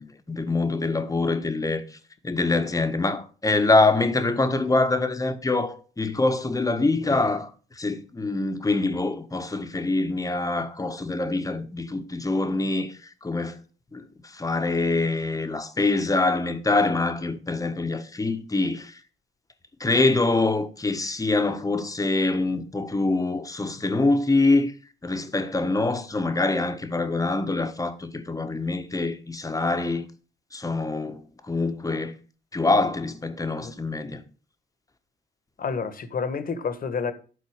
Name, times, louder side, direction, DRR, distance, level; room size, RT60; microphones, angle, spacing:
voice 1, 0.0-1.8 2.2-7.5 7.8-13.6 13.9-19.0 19.8-24.7 25.0-30.0 30.5-32.1 32.5-34.2, left 3 dB, 15° left, 1.3 m, -25 dB
voice 2, 35.6-37.1, left 5 dB, 45° left, 1.5 m, -29 dB
12.0 x 4.1 x 6.4 m
cardioid pair, 90°, 20 cm